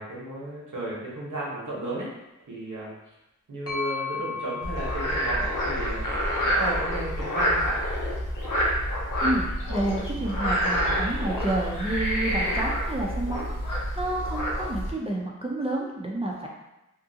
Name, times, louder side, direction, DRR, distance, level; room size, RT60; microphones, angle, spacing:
voice 1, 0.0-2.1 2.5-3.1 3.5-7.8, right 1 dB, 80° right, -5 dB, 1.0 m, -34 dB
sound 1, 3.7-7.4, left 5 dB, 50° left, 0.8 m, -37 dB
Frog, 4.6-14.9, equal, 90° left, 0.6 m, -27 dB
voice 2, 9.2-16.5, right 1 dB, 20° right, -2 dB, 0.4 m, -30 dB
2.8 x 2.4 x 2.7 m, 0.95 s
wide cardioid pair, 75°, 30 cm